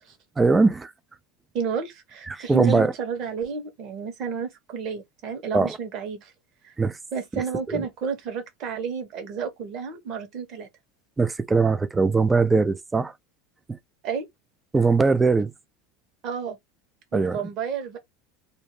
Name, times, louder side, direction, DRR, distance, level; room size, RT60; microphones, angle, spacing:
voice 1, 0.4-0.9 2.3-2.9 5.5-5.8 6.8-7.0 7.3-7.9 11.2-13.1 13.7-13.8 14.7-15.5 17.1-17.4, right 4 dB, 15° right, 0.4 m, -21 dB
voice 2, 1.5-6.3 6.6-6.7 7.1-10.7 14.0-14.3 16.2-16.6 17.1-18.0, right 6 dB, 50° right, 1.2 m, -31 dB
2.7 x 2.1 x 3.1 m
supercardioid pair, 115°, 0 cm